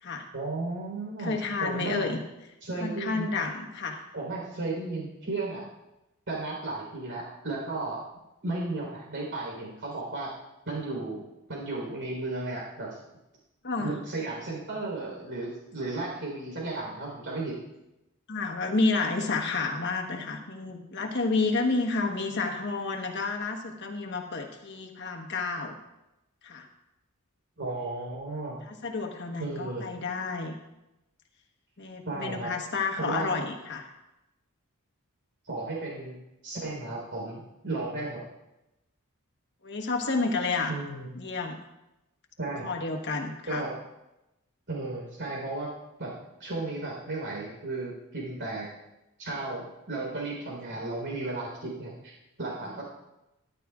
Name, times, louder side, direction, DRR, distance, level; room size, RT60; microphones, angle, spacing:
voice 1, 0.3-2.1 2.6-3.3 4.1-5.6 6.3-8.0 8.4-10.3 10.7-12.9 13.8-17.6 27.6-28.6 29.4-29.8 32.0-32.5 33.0-33.3 35.4-36.2 36.4-38.2 40.7-41.1 42.4-42.7 43.5-43.7 44.7-45.7 46.0-46.1 46.4-48.7 49.2-52.1 52.4-52.8, right 2 dB, 60° right, -2 dB, 4.1 m, -34 dB
voice 2, 1.2-2.2 2.8-4.0 13.6-13.9 18.3-25.7 26.4-26.7 28.7-30.5 31.8-33.9 39.6-40.7 41.1-41.6 42.6-43.6 52.7-52.8, left 3 dB, 55° left, 2 dB, 1.3 m, -30 dB
13.0 x 11.0 x 2.5 m, 0.94 s
head